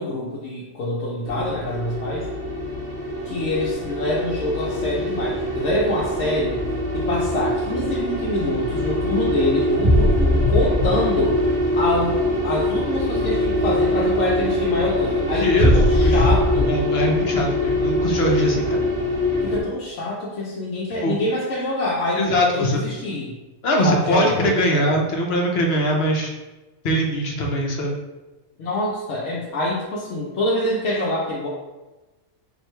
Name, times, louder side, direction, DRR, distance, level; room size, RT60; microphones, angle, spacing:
voice 1, 0.0-2.3 3.2-6.7 6.9-11.5 11.8-12.2 12.4-16.8 19.4-23.4 23.8-24.8 28.6-31.5, left 1 dB, 90° left, -6 dB, 1.1 m, -25 dB
sound 1, 1.3-19.6, left 1 dB, 35° right, 1.1 m, -22 dB
voice 2, 15.3-16.2 16.7-18.9 21.0-21.2 22.2-22.8 23.6-26.3 26.8-28.0, equal, 65° left, 0 dB, 0.9 m, -22 dB
4.5 x 2.6 x 3.2 m, 1.1 s
omnidirectional pair, 1.2 m